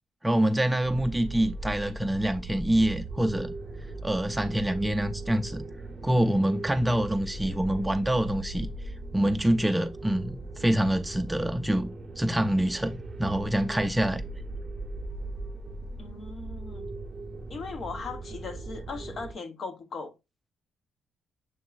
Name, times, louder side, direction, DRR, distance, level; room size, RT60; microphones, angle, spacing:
voice 1, 0.2-3.5 4.0-5.7 6.0-8.7 9.1-11.9 12.2-14.2, right 1 dB, 10° right, 0.4 m, -26 dB
sound 1, 0.8-19.3, right 2 dB, 30° right, 0.8 m, -39 dB
voice 2, 16.0-16.9 17.5-20.1, left 4 dB, 50° left, 0.8 m, -38 dB
7.0 x 3.0 x 2.3 m
cardioid pair, 90°, 0 cm